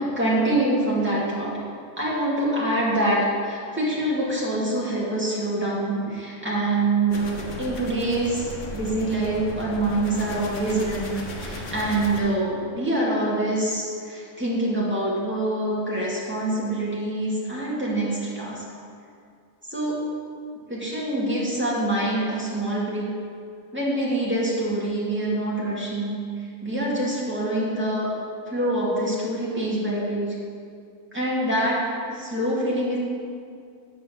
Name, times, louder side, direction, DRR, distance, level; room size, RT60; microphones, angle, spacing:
voice 1, 0.0-1.5 2.0-18.6 19.7-20.0 20.7-23.1 23.7-28.1 28.5-30.3 31.1-33.0, right 1 dB, 10° right, -7 dB, 2.5 m, -25 dB
sound 1, 7.1-12.2, left 1 dB, 65° left, 1.4 m, -36 dB
8.6 x 6.2 x 7.2 m, 2.3 s
omnidirectional pair, 1.4 m